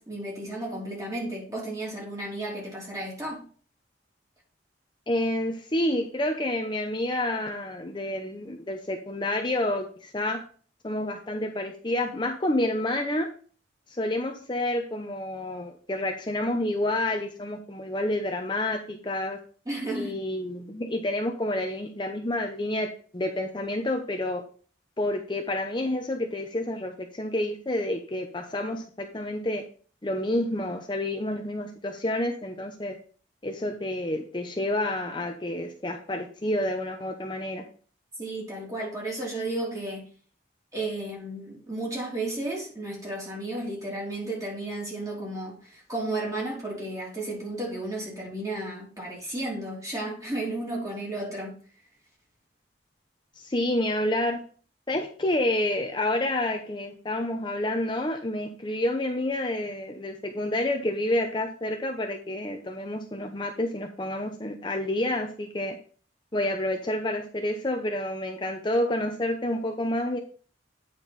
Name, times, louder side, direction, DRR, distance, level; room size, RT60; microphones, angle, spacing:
voice 1, 0.0-3.4 19.7-20.2 38.2-40.1 40.7-51.6, right 2 dB, 20° right, 3.0 m, -33 dB
voice 2, 5.1-10.4 10.8-13.3 13.9-19.4 19.9-24.4 25.0-29.6 30.0-33.0 33.4-37.6 53.4-54.4 54.9-65.8 66.3-70.2, left 1 dB, 25° left, 0.7 m, -29 dB
9.0 x 5.2 x 4.0 m
head